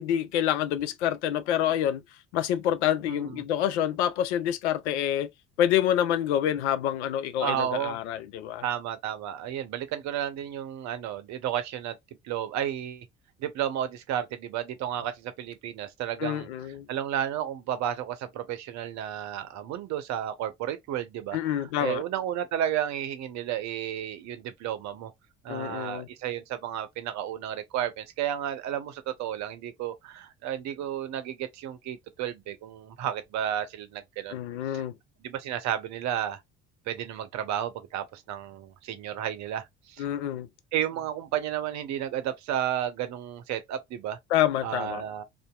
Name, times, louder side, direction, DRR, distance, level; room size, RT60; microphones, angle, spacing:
voice 1, 0.0-2.0 2.3-5.3 5.6-8.6 16.2-16.9 21.3-22.0 25.5-26.1 34.3-34.9 40.0-40.5 44.3-45.0, left 11 dB, 75° left, 0.5 m, -27 dB
voice 2, 3.1-3.4 7.4-8.0 8.6-12.0 12.2-13.1 13.4-16.5 16.9-25.1 25.4-34.4 34.7-34.8 35.2-36.4 36.9-40.1 40.7-44.2 44.6-45.2, right 10 dB, 55° right, 0.7 m, -32 dB
2.7 x 2.5 x 2.3 m
hypercardioid pair, 60°, 34 cm